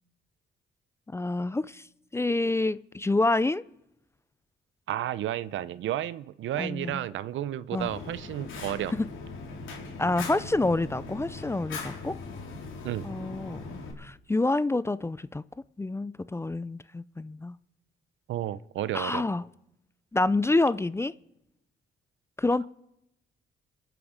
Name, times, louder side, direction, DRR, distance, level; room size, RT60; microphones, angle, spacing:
voice 1, 1.1-1.9 2.1-3.6 6.6-7.0 7.7-7.9 9.0-9.1 10.0-12.2 13.0-15.4 15.8-17.5 18.9-19.4 20.1-21.1 22.4-22.7, left 2 dB, 15° left, 0.4 m, -27 dB
voice 2, 4.9-8.9 12.8-13.1 18.3-19.2, right 12 dB, 75° right, 0.7 m, -32 dB
Fire, 7.8-13.9, left 3 dB, 75° left, 3.7 m, -40 dB
27.0 x 9.3 x 5.1 m
cardioid pair, 90°, 20 cm